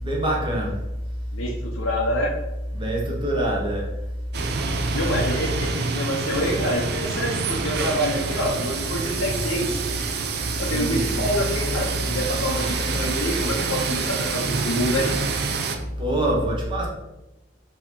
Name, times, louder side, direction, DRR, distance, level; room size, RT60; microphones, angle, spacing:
voice 1, 0.0-0.8 2.7-3.9 10.7-11.2 16.0-16.9, right 1 dB, 25° right, -2 dB, 1.0 m, -24 dB
voice 2, 1.3-2.3 4.4-9.8 10.6-15.1, equal, 90° left, -3 dB, 0.7 m, -27 dB
sound 1, 4.3-15.8, right 4 dB, 55° right, 0.5 m, -27 dB
4.3 x 3.0 x 3.8 m, 0.95 s
head